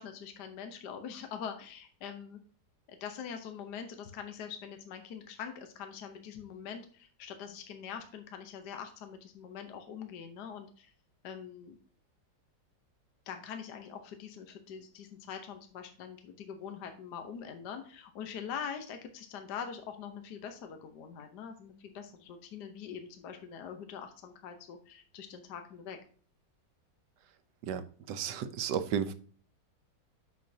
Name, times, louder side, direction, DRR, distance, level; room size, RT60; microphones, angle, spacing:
voice 1, 0.0-2.4 2.9-10.9 11.2-11.8 13.3-26.0, left 7 dB, 65° left, 6 dB, 1.4 m, -43 dB
voice 2, 27.6-29.1, right 8 dB, 70° right, 11 dB, 1.3 m, -33 dB
8.1 x 6.3 x 2.7 m, 0.44 s
omnidirectional pair, 2.0 m